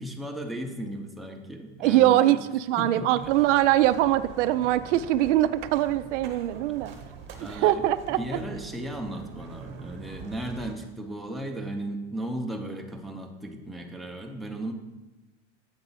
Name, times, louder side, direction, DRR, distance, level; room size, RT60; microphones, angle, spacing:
voice 1, 0.0-2.4 2.8-3.1 6.7-6.8 7.4-14.7, right 1 dB, ahead, 1 dB, 0.6 m, -36 dB
voice 2, 1.8-6.9 7.5-8.2, right 14 dB, 80° right, 13 dB, 0.5 m, -22 dB
sound 1, 3.1-10.7, right 6 dB, 35° right, 1.1 m, -44 dB
8.0 x 3.7 x 5.6 m, 1.1 s
supercardioid pair, 135°, 35 cm